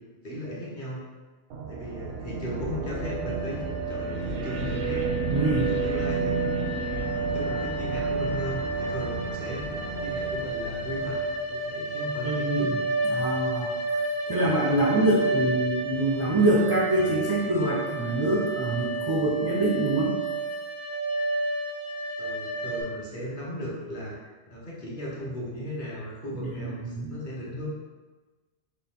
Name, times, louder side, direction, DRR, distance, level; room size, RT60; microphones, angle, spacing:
voice 1, 0.2-1.0 1.7-5.0 5.5-6.3 7.1-9.6 10.0-11.2 11.5-12.7 15.6-15.7 22.2-27.7, equal, 50° left, -5 dB, 1.1 m, -36 dB
sound 1, 1.5-11.7, right 4 dB, 85° right, 0.9 m, -32 dB
sound 2, 2.9-22.8, right 2 dB, 85° left, 1.5 m, -31 dB
voice 2, 5.3-5.7 12.2-12.8 13.1-13.7 14.3-20.2 26.6-27.1, right 1 dB, 35° right, -5 dB, 0.3 m, -25 dB
4.1 x 2.4 x 3.5 m, 1.3 s
omnidirectional pair, 1.1 m